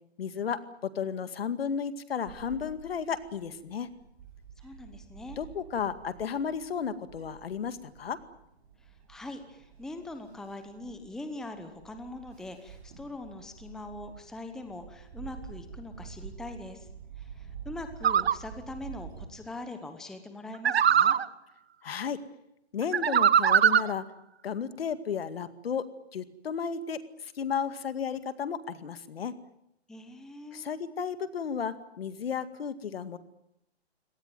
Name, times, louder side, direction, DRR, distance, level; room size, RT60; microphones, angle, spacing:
voice 1, 0.2-0.6 1.0-3.9 5.4-8.2 21.8-22.2 22.7-24.0 24.4-25.8 26.1-29.3 30.5-33.2, left 7 dB, 65° left, 12 dB, 2.2 m, -33 dB
Bird / Wind, 2.3-19.2, right 7 dB, 40° right, 7.5 m, -48 dB
voice 2, 4.6-5.4 9.1-16.9 17.2-21.2 29.9-30.6, left 2 dB, ahead, 7 dB, 1.0 m, -42 dB
sound 1, 18.0-18.3 20.6-21.3 22.9-23.9, right 8 dB, 75° right, 1.1 m, -21 dB
25.0 x 18.5 x 9.3 m, 0.80 s
hypercardioid pair, 160°, 32 cm